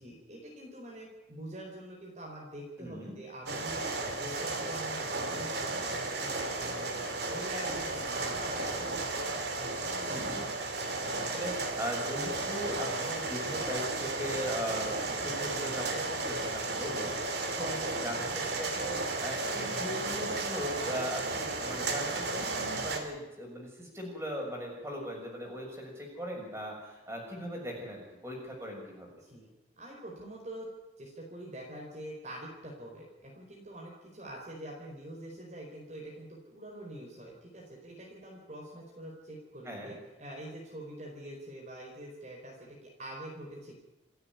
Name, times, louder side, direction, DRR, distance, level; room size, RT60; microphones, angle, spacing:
voice 1, 0.0-9.2 29.2-29.5 29.8-30.7 31.0-43.8, right 1 dB, 40° right, -2 dB, 4.6 m, -45 dB
voice 2, 2.8-3.1 10.1-10.5 11.0-29.1 39.6-39.9, equal, 15° right, -1 dB, 6.6 m, -39 dB
sound 1, 3.5-23.0, right 3 dB, 60° right, 3.0 m, -34 dB
28.5 x 9.8 x 9.6 m, 1.1 s
head